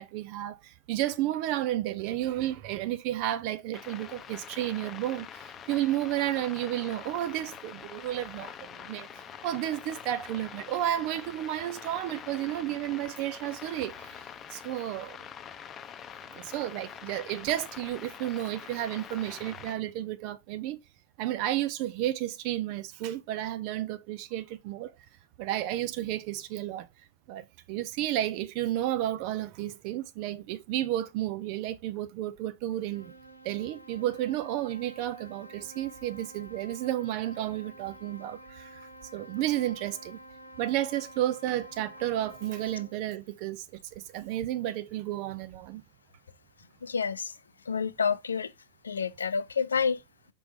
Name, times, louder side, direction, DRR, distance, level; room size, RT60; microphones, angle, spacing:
voice 1, 0.0-14.2 14.5-15.2 16.3-20.8 21.2-24.9 25.4-26.9 27.3-33.1 33.4-38.8 39.1-40.2 40.6-43.7 43.9-45.8, right 13 dB, 45° right, 0.5 m, -32 dB
sound 1, 3.7-19.7, left 8 dB, 25° left, 0.7 m, -45 dB
sound 2, 32.7-43.0, equal, 85° right, 1.1 m, -50 dB
voice 2, 46.8-47.4 47.7-48.5 48.8-50.0, left 6 dB, 75° left, 0.5 m, -29 dB
6.0 x 5.3 x 3.1 m
figure-of-eight pair, 90°, 0 cm